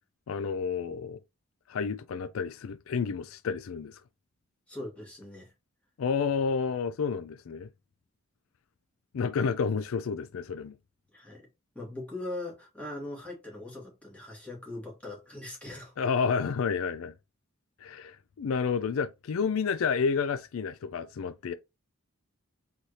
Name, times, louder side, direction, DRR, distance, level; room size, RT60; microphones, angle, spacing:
voice 1, 0.3-1.2 1.7-4.0 6.0-7.7 9.1-10.7 16.0-17.1 17.8-21.5, left 5 dB, 75° left, 0.4 m, -30 dB
voice 2, 4.7-5.5 11.1-11.5 11.7-15.9, left 2 dB, 5° left, 2.2 m, -40 dB
4.2 x 3.9 x 3.2 m
head